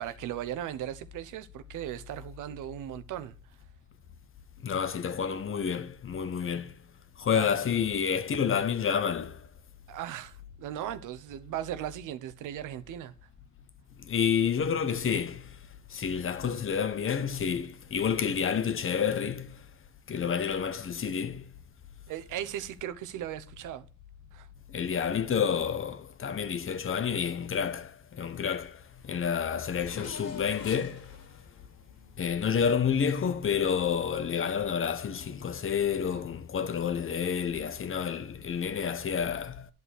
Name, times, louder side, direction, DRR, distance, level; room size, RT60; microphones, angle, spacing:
voice 1, 0.0-3.6 7.3-7.6 9.9-13.3 22.1-23.9 24.3-24.5 36.1-36.2, right 11 dB, 85° right, 0.9 m, -38 dB
voice 2, 4.6-6.8 7.2-9.5 14.0-15.6 15.9-19.6 20.1-21.5 24.7-31.1 32.2-39.7, left 7 dB, 45° left, 1.0 m, -29 dB
Race car auto racing / Accelerating revving vroom, 28.9-32.9, left 5 dB, 65° left, 2.9 m, -46 dB
10.5 x 5.6 x 6.3 m
cardioid pair, 90°, 30 cm